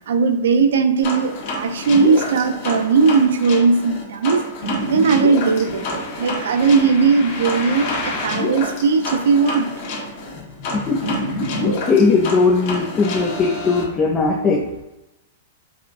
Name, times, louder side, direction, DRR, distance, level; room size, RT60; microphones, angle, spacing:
voice 1, 0.1-4.4 4.9-9.7, right 5 dB, 75° right, 8 dB, 0.4 m, -18 dB
sound 1, 1.0-13.8, left 1 dB, 55° left, 1.1 m, -27 dB
voice 2, 10.7-14.6, left 4 dB, 25° left, 0 dB, 0.4 m, -19 dB
4.7 x 2.4 x 2.5 m, 0.94 s
hypercardioid pair, 120°, 0 cm